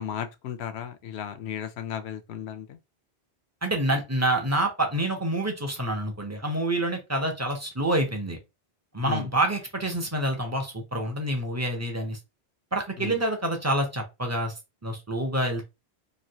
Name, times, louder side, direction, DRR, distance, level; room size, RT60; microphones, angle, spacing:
voice 1, 0.0-2.8 9.0-9.3 13.0-13.2, left 9 dB, 75° left, 0.8 m, -35 dB
voice 2, 3.6-8.4 8.9-12.2 12.7-14.5 14.8-15.6, right 1 dB, 25° right, 0.4 m, -27 dB
3.1 x 2.5 x 2.7 m
omnidirectional pair, 1.1 m